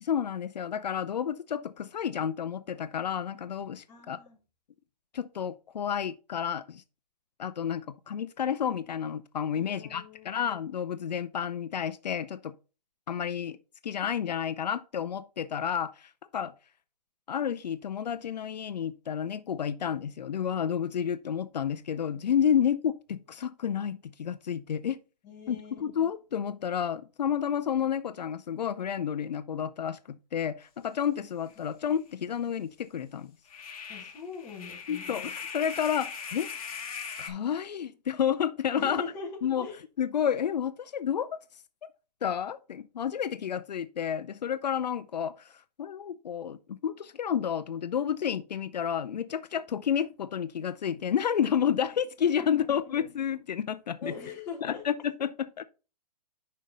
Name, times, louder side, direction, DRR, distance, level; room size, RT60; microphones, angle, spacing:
voice 1, 0.0-4.2 5.1-6.8 7.4-12.5 13.1-13.6 13.8-16.5 17.3-25.0 25.5-33.3 34.9-36.5 37.2-39.0 39.4-39.7 40.0-41.4 42.2-54.1 54.6-55.6, left 8 dB, 75° left, 0.6 m, -30 dB
voice 2, 3.9-4.4 9.5-10.5 25.2-25.9 33.9-35.2 38.7-39.8 52.4-52.9 54.0-54.8, left 4 dB, 15° left, 1.3 m, -42 dB
sound 1, 31.5-31.6 31.9-32.0 33.5-37.3, left 6 dB, 55° left, 1.3 m, -39 dB
5.6 x 5.3 x 3.9 m
hypercardioid pair, 170°, 21 cm